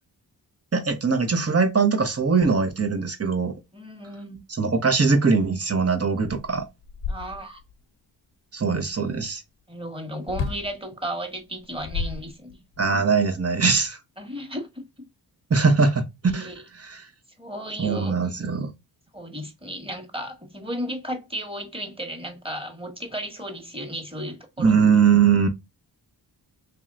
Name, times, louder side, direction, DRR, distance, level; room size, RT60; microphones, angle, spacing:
voice 1, 0.7-3.5 4.6-6.6 8.5-9.4 12.8-14.0 15.5-16.1 16.3-16.5 16.8-17.0 17.8-18.7 24.6-25.5, right 5 dB, 35° right, 1.0 m, -21 dB
voice 2, 3.7-4.4 7.1-7.6 9.7-12.6 14.2-14.7 16.2-16.6 17.4-18.1 19.1-24.8, equal, 10° right, 1.5 m, -34 dB
sound 1, 6.2-7.7 10.3-10.7 11.6-12.8, left 5 dB, 85° left, 0.8 m, -32 dB
3.2 x 2.8 x 3.6 m
cardioid pair, 55°, 43 cm